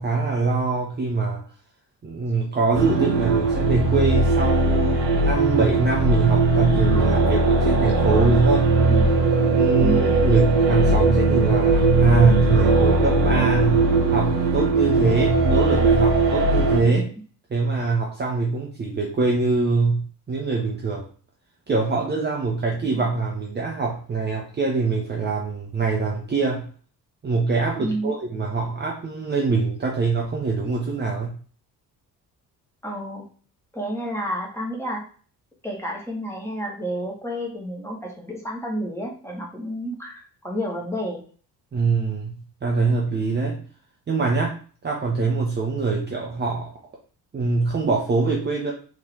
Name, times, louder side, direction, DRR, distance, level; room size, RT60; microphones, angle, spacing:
voice 1, 0.0-1.4 2.0-8.7 9.5-17.1 17.5-21.0 21.7-26.7 27.2-31.3 41.7-43.6 44.1-44.6 44.8-46.7 47.3-48.7, right 4 dB, 20° right, -1 dB, 0.7 m, -23 dB
sound 1, 2.7-16.8, right 3 dB, 75° right, 0.8 m, -19 dB
voice 2, 9.8-10.2 16.7-17.1 27.8-28.1 32.8-33.2 33.7-35.0 35.6-41.2, equal, 5° left, -2 dB, 1.2 m, -30 dB
3.5 x 2.8 x 3.4 m, 0.42 s
figure-of-eight pair, 40°, 50 cm